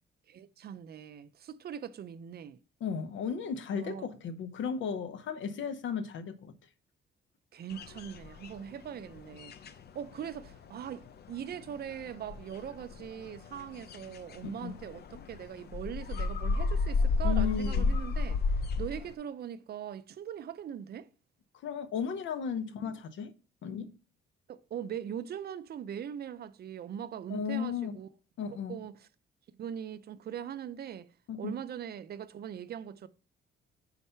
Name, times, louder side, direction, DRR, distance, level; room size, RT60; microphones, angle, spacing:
voice 1, 0.3-2.6 3.7-4.1 7.5-9.5 9.9-18.4 18.8-21.1 22.8-23.0 24.5-28.1 28.7-29.1 29.5-31.1 31.4-33.1, right 9 dB, 50° right, 0.5 m, -41 dB
voice 2, 2.8-6.5 14.6-14.7 17.2-17.9 21.6-23.3 23.6-23.9 27.3-28.0 28.4-28.8 31.3-31.5, left 7 dB, 75° left, 0.8 m, -35 dB
sound 1, 7.7-8.9 9.1-19.1, left 3 dB, 55° left, 0.5 m, -32 dB
5.4 x 4.1 x 5.6 m
cardioid pair, 90°, 20 cm